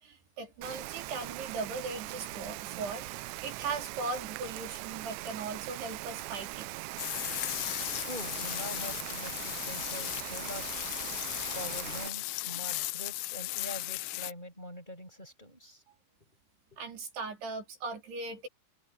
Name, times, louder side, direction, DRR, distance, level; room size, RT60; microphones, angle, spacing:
voice 1, 0.0-3.1 3.4-6.7 16.8-18.5, right 3 dB, 70° right, 5.7 m, -38 dB
Rain, 0.6-12.1, right 19 dB, 90° right, 2.8 m, -41 dB
sound 1, 7.0-14.3, left 22 dB, 85° left, 2.5 m, -36 dB
voice 2, 8.0-10.7 11.5-15.8 16.7-16.8, equal, 10° left, 7.3 m, -44 dB
omnidirectional pair, 5.0 m